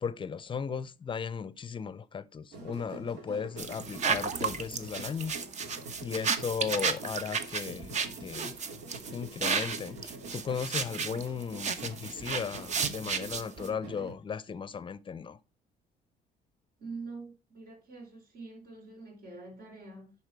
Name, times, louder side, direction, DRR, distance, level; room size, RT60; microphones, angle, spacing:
voice 1, 0.0-5.3 6.0-8.5 9.1-15.4, left 6 dB, 30° left, 0.6 m, -36 dB
sound 1, 2.5-14.1, right 2 dB, 80° right, 2.6 m, -46 dB
sound 2, 3.6-13.7, right 5 dB, 45° right, 1.0 m, -33 dB
voice 2, 16.8-20.1, right 3 dB, 65° right, 4.7 m, -45 dB
10.5 x 4.3 x 4.7 m
cardioid pair, 110°, 17 cm